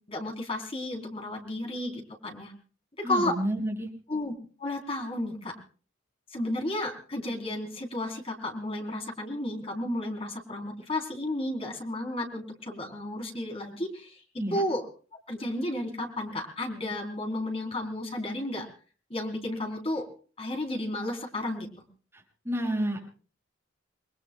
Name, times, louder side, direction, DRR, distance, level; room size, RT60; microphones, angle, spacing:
voice 1, 0.0-2.5 3.0-3.4 4.1-4.3 4.6-5.5 6.3-14.2 14.5-14.8 15.3-18.7 19.1-20.1 20.4-21.7, left 1 dB, 30° left, 2 dB, 3.7 m, -32 dB
voice 2, 3.0-3.9 14.4-14.6 22.1-23.0, right 1 dB, 10° right, -1 dB, 6.7 m, -30 dB
29.5 x 21.0 x 2.3 m, 0.39 s
head